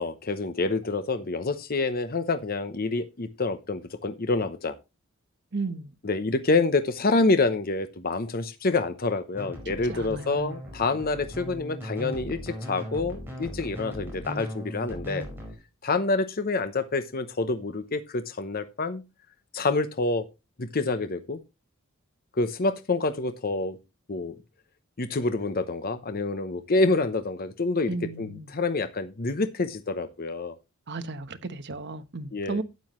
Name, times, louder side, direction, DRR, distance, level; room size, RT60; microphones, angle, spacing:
voice 1, 0.0-4.8 6.0-15.3 15.8-19.0 19.5-20.2 20.6-21.4 22.4-23.8 24.1-24.3 25.0-30.5 32.3-32.6, left 3 dB, 45° left, 0.8 m, -27 dB
voice 2, 5.5-5.9 9.9-10.6 27.9-28.5 30.9-32.6, right 3 dB, 55° right, 1.1 m, -34 dB
sound 1, 9.3-15.5, equal, 10° right, 4.9 m, -38 dB
12.0 x 9.3 x 3.1 m
head